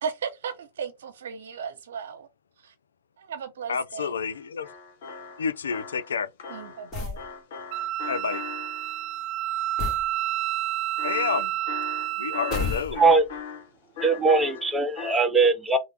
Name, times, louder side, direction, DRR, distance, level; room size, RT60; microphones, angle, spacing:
voice 1, 0.0-2.3 2.6-2.7 3.2-4.2 6.5-7.2, right 6 dB, 75° right, 0.7 m, -36 dB
voice 2, 3.7-4.7 5.4-6.3 8.1-8.4 11.0-11.5 12.2-13.0, left 6 dB, 85° left, 0.3 m, -29 dB
sound 1, 4.3-9.1 11.0-13.7 14.0-15.1, left 7 dB, 65° left, 1.0 m, -40 dB
sound 2, 6.9-7.3 9.8-10.1 12.5-13.3, left 4 dB, 35° left, 1.3 m, -31 dB
Wind instrument woodwind instrument, 7.7-12.9, right 13 dB, 50° right, 0.3 m, -30 dB
voice 3, 14.0-15.8, right 3 dB, 15° right, 0.7 m, -20 dB
3.3 x 2.1 x 3.3 m
hypercardioid pair, 105°, 0 cm